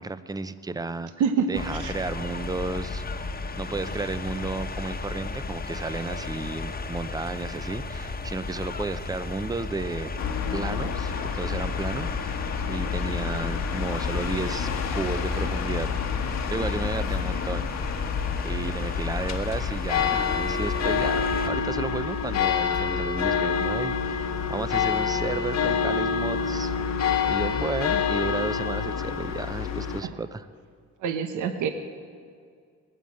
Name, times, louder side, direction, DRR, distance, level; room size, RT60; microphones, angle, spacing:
voice 1, 0.0-1.1 1.5-10.1 10.5-16.2 16.5-17.9 18.4-30.5, right 3 dB, 10° right, 13 dB, 0.6 m, -33 dB
sound 1, 1.5-21.5, left 3 dB, 30° left, 1.2 m, -34 dB
sound 2, 10.2-30.0, left 6 dB, 60° left, 1.3 m, -28 dB
voice 2, 31.0-31.7, right 6 dB, 80° right, 8 dB, 1.1 m, -25 dB
19.5 x 9.2 x 7.6 m, 2.1 s
cardioid pair, 90°, 30 cm